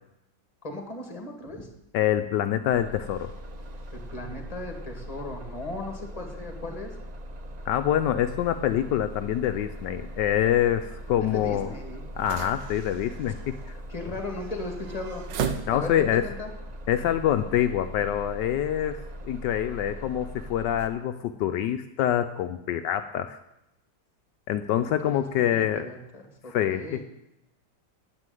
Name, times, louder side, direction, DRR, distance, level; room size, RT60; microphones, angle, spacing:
voice 1, 0.6-1.7 3.9-6.9 11.2-12.0 13.9-15.3 15.7-16.5 25.0-25.2 25.5-27.0, left 2 dB, 20° left, 4 dB, 2.0 m, -37 dB
voice 2, 1.9-3.3 7.7-11.7 12.2-13.8 15.7-16.3 16.9-19.0 19.3-23.4 24.5-25.9 26.5-27.0, left 11 dB, 75° left, 9 dB, 1.2 m, -26 dB
Bus, 2.7-20.9, equal, 40° right, 0.6 m, -41 dB
sound 1, 8.5-16.2, right 7 dB, 80° right, 1.6 m, -39 dB
9.7 x 8.6 x 9.1 m, 0.87 s
omnidirectional pair, 1.9 m